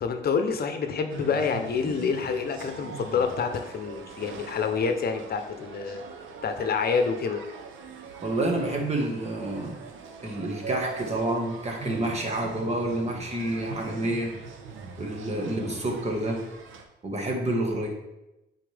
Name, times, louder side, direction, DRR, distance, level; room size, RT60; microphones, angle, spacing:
voice 1, 0.0-6.0 6.4-7.4, left 5 dB, 50° left, 6 dB, 0.8 m, -27 dB
sound 1, 1.1-16.8, right 5 dB, 80° right, 0.8 m, -42 dB
voice 2, 8.2-9.8 10.2-14.3 15.0-16.4 17.0-17.9, right 1 dB, 35° right, 1 dB, 1.6 m, -28 dB
7.7 x 4.2 x 3.4 m, 0.93 s
cardioid pair, 90°, 20 cm